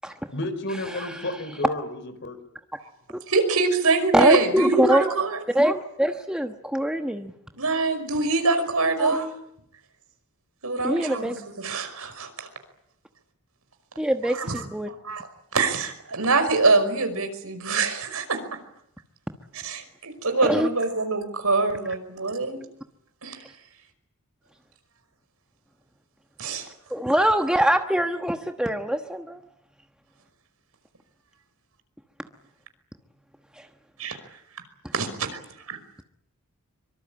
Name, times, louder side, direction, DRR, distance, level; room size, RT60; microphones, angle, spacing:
voice 1, 0.3-2.4, left 1 dB, 55° left, 10 dB, 4.5 m, -31 dB
voice 2, 0.8-1.4 3.1-3.2 4.1-5.1 5.5-7.3 9.0-9.2 10.8-11.4 14.0-14.9 20.4-20.7 26.9-29.4 33.6-33.7, equal, 5° right, 5 dB, 1.2 m, -23 dB
voice 3, 3.3-5.4 7.6-9.3 10.6-12.5 14.3-14.6 14.9-15.3 15.5-18.4 19.5-22.6 23.2-23.5 26.4-26.7 34.0-34.2 34.9-35.4 35.7-35.8, right 3 dB, 85° right, 8 dB, 5.4 m, -24 dB
24.5 x 24.5 x 8.8 m, 0.73 s
head